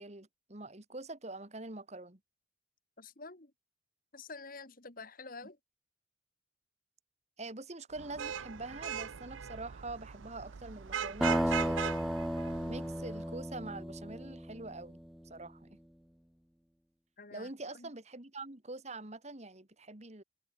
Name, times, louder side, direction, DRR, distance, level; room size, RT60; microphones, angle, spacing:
voice 1, 0.0-2.2 7.4-11.8 12.6-15.0 15.2-15.8 17.3-20.2, right 2 dB, 35° right, 2.0 m, -45 dB
voice 2, 3.0-3.5 4.1-5.6 17.2-17.9, left 3 dB, 45° left, 2.2 m, -48 dB
Vehicle horn car horn honking / Traffic noise roadway noise, 7.9-13.2, right 8 dB, 85° right, 0.6 m, -40 dB
sound 1, 11.2-15.0, equal, ahead, 0.3 m, -34 dB
head